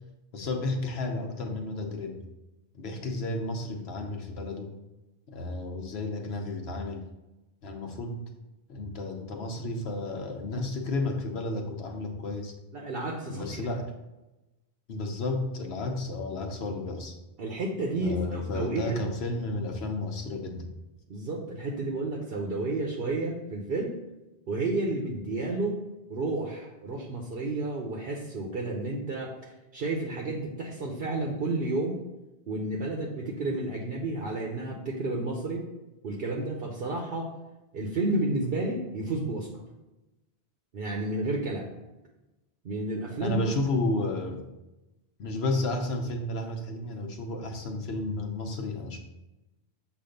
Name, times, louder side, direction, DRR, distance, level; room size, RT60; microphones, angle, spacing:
voice 1, 0.3-2.2 2.7-4.7 5.3-7.1 7.6-8.3 8.7-12.5 13.3-13.9 14.9-17.2 18.0-20.7 43.2-44.4 45.2-49.0, left 2 dB, 70° left, 3 dB, 1.1 m, -32 dB
voice 2, 12.7-13.6 17.4-19.0 21.1-24.0 24.5-25.8 26.1-32.0 32.5-35.7 36.0-37.3 37.7-39.6 40.7-41.7 42.6-43.5, right 2 dB, 60° right, 0 dB, 1.0 m, -31 dB
7.2 x 2.5 x 5.1 m, 1.0 s
omnidirectional pair, 1.1 m